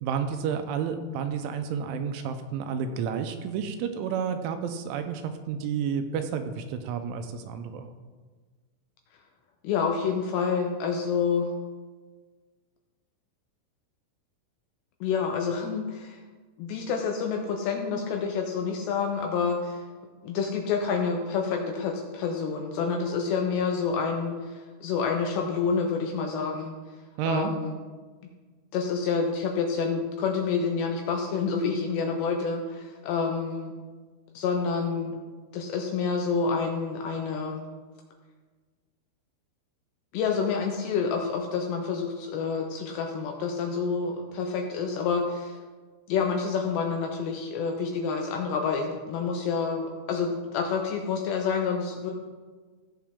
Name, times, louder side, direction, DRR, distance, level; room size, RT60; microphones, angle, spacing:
voice 1, 0.0-7.9 27.2-27.5, right 7 dB, 80° right, 7 dB, 3.0 m, -30 dB
voice 2, 9.6-11.5 15.0-16.2 16.6-19.8 20.2-26.8 27.3-27.8 28.7-33.7 34.3-35.2 35.5-37.7 40.1-45.6 46.1-52.1, left 5 dB, 75° left, 2 dB, 2.6 m, -28 dB
16.0 x 6.9 x 3.6 m, 1.4 s
omnidirectional pair, 5.7 m